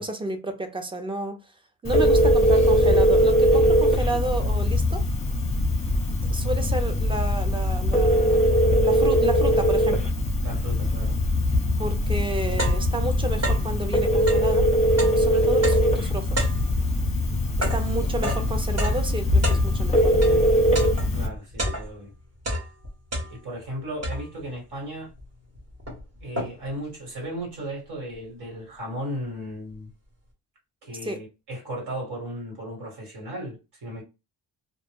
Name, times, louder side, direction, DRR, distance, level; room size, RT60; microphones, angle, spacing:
voice 1, 0.0-1.4 1.8-5.0 6.3-8.5 8.8-10.0 11.8-14.7 15.0-16.5 17.6-20.5 31.0-31.2, right 2 dB, 15° right, 0.4 m, -31 dB
Telephone, 1.8-21.3, equal, 15° left, 0.8 m, -21 dB
voice 2, 10.4-11.2 21.1-22.1 23.3-25.1 26.2-29.9 30.8-34.0, right 1 dB, 65° right, 1.6 m, -36 dB
sound 1, 11.7-11.8 12.1-13.8 14.2-20.4 20.7-22.1 22.4-23.6 24.0-24.6 25.2-25.3 25.5-26.8, equal, 35° right, 1.1 m, -31 dB
2.5 x 2.1 x 3.4 m
cardioid pair, 130°, 42 cm